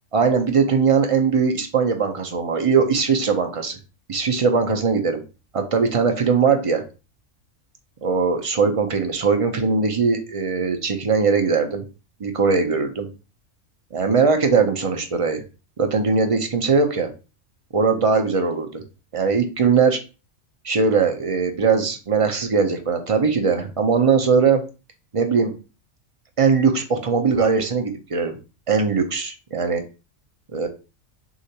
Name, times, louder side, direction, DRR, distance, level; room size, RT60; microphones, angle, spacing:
voice 1, 0.1-3.8 4.1-5.2 5.5-6.8 8.0-11.8 12.2-13.1 13.9-15.4 15.8-17.1 17.7-18.8 19.1-20.0 20.6-24.6 25.1-25.5 26.4-28.4 28.7-29.8 30.5-30.7, right 5 dB, 40° right, 5 dB, 0.5 m, -20 dB
6.5 x 2.5 x 2.9 m, 0.31 s
omnidirectional pair, 1.4 m